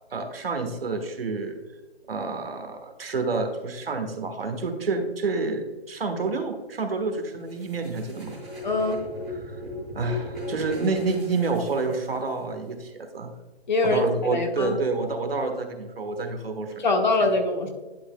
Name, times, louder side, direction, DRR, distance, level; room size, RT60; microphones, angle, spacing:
voice 1, 0.1-1.6 2.1-8.4 9.3-9.6 9.9-13.3 13.8-16.8 17.2-17.3, right 3 dB, 65° right, 5 dB, 1.5 m, -28 dB
sound 1, 7.5-12.4, left 1 dB, ahead, 0.6 m, -37 dB
voice 2, 8.6-9.0 13.7-14.7 16.8-17.7, left 2 dB, 45° left, 3 dB, 1.4 m, -23 dB
11.0 x 5.8 x 2.3 m, 1.2 s
hypercardioid pair, 165°, 32 cm